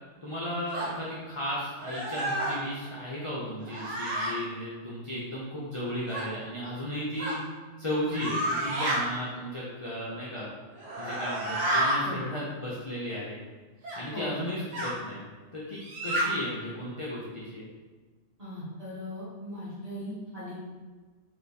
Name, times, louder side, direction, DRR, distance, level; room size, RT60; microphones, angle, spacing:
voice 1, 0.2-7.4 7.8-10.5 11.0-13.4 14.0-15.3 15.5-17.7, left 1 dB, 35° left, -7 dB, 0.5 m, -35 dB
sound 1, 0.7-0.9 1.8-2.6 3.6-4.3 6.1-6.3 7.2-7.4 8.1-9.0 10.7-12.0 13.8-14.0 14.7-14.9 15.8-16.3, right 1 dB, 65° right, 1.4 m, -30 dB
voice 2, 18.4-20.6, left 1 dB, 30° right, -10 dB, 1.6 m, -39 dB
3.4 x 2.9 x 4.1 m, 1.4 s
omnidirectional pair, 1.4 m